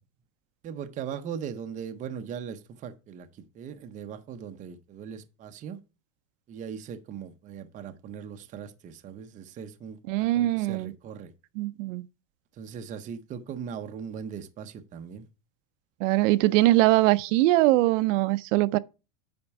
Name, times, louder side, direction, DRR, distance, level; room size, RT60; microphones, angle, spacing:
voice 1, 0.6-3.3 3.5-5.8 6.5-11.3 12.6-15.3, right 7 dB, 20° right, 0.6 m, -39 dB
voice 2, 10.1-10.9 11.6-12.0 16.0-18.8, right 17 dB, 65° right, 0.6 m, -22 dB
8.8 x 5.2 x 4.6 m
supercardioid pair, 170°, 41 cm